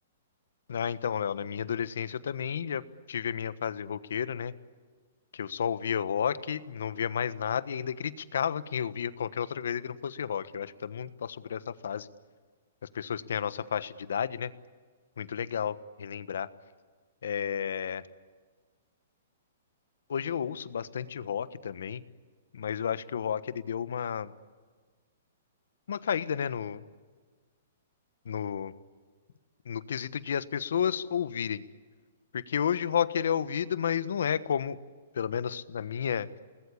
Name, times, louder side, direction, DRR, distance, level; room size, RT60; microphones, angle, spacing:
voice 1, 0.7-2.8 3.1-4.5 5.3-12.1 12.9-14.5 15.2-16.5 17.2-18.0 20.1-22.0 22.5-24.3 25.9-26.8 28.3-28.7 29.7-31.6 32.3-34.8 35.1-36.3, left 8 dB, 80° left, 14 dB, 1.3 m, -31 dB
29.0 x 20.5 x 8.7 m, 1.5 s
hypercardioid pair, 160°, 0 cm